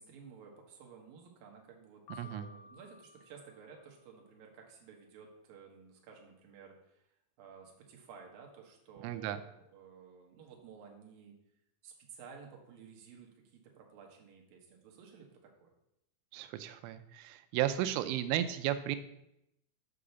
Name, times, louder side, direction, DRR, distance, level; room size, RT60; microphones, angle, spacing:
voice 1, 0.0-11.3 11.8-15.7, right 6 dB, 65° right, 0 dB, 2.5 m, -54 dB
Piano, 2.1-4.2, left 4 dB, 75° left, 1.9 m, -55 dB
voice 2, 9.0-9.4 16.3-19.0, right 12 dB, 85° right, 10 dB, 3.1 m, -34 dB
7.9 x 5.0 x 6.9 m, 0.81 s
omnidirectional pair, 5.6 m